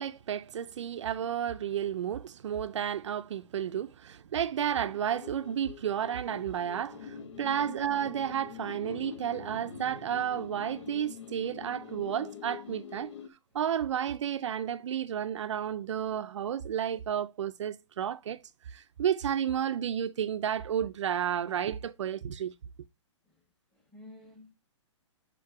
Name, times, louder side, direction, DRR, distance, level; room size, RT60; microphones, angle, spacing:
voice 1, 0.0-13.1 13.5-18.4 18.7-22.5, right 9 dB, 70° right, 0.4 m, -32 dB
sound 1, 4.6-13.3, left 7 dB, 65° left, 1.1 m, -45 dB
voice 2, 7.3-7.7 23.3-23.4 23.7-24.5, left 2 dB, 5° left, 1.4 m, -53 dB
5.2 x 4.6 x 4.7 m
hypercardioid pair, 170°, 16 cm